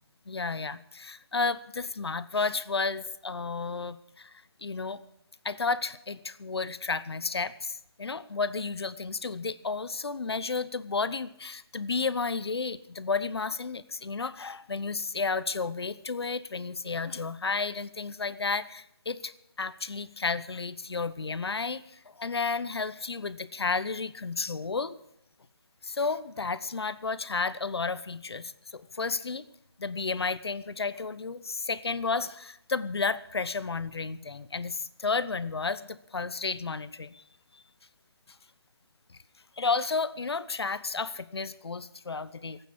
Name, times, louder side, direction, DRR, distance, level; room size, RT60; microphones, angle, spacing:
voice 1, 0.3-5.0 5.4-19.3 19.6-25.0 25.8-29.5 29.8-37.2 37.5-37.6 39.6-42.6, left 4 dB, 75° left, 16 dB, 0.9 m, -32 dB
16.5 x 9.1 x 8.3 m, 0.77 s
hypercardioid pair, 180°, 13 cm